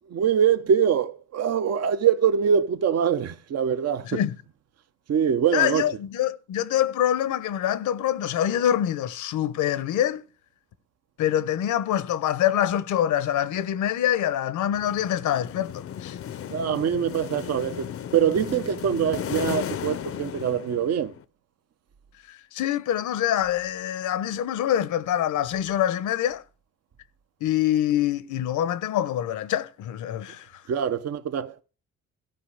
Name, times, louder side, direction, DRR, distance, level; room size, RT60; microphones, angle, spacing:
voice 1, 0.1-4.2 5.1-5.8 16.5-17.9 18.1-21.1 30.7-31.6, right 8 dB, 55° right, 0.9 m, -23 dB
voice 2, 5.5-10.2 11.2-16.2 22.3-26.4 27.4-30.5, left 11 dB, 80° left, 1.0 m, -25 dB
sound 1, 14.7-21.2, left 9 dB, 50° left, 0.6 m, -35 dB
14.0 x 5.2 x 6.5 m
cardioid pair, 90°, 30 cm